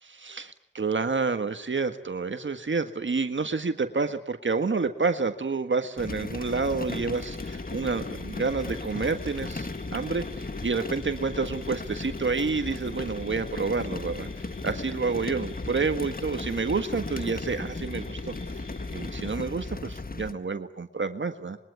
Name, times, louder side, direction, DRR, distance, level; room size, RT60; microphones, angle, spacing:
voice 1, 0.0-14.3 14.6-18.3 18.9-21.6, right 4 dB, 70° right, 8 dB, 1.6 m, -29 dB
sound 1, 6.0-20.3, left 3 dB, 45° left, 1.6 m, -36 dB
sound 2, 7.1-19.3, left 4 dB, 80° left, 2.1 m, -45 dB
26.0 x 22.5 x 9.5 m, 0.75 s
cardioid pair, 45°, 20 cm